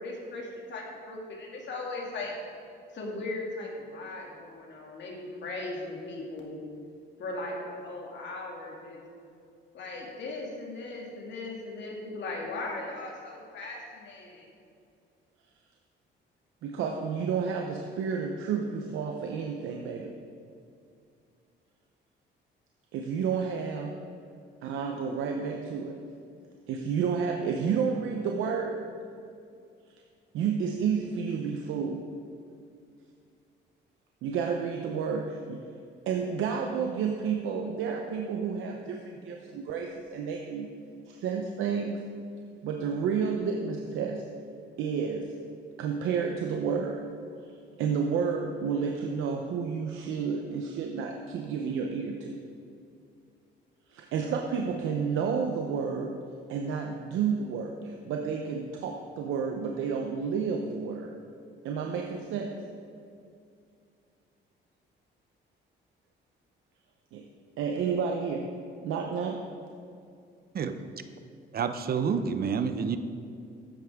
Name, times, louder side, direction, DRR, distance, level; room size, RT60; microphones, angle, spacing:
voice 1, 0.0-2.3 2.9-6.6 7.2-9.0 9.7-14.5, left 2 dB, 65° left, -1 dB, 2.5 m, -38 dB
voice 2, 16.6-20.2 22.9-24.0 24.6-26.0 26.7-28.8 30.3-32.1 34.2-35.7 36.1-40.7 41.1-42.0 42.6-44.3 44.8-45.3 45.8-47.1 47.8-52.4 53.9-56.2 56.5-61.2 61.6-62.6 67.1-67.3 67.6-69.5, right 6 dB, 90° right, 2 dB, 0.8 m, -31 dB
voice 3, 71.5-73.0, right 6 dB, 50° right, 10 dB, 0.7 m, -28 dB
13.0 x 9.2 x 3.6 m, 2.4 s
cardioid pair, 90°, 20 cm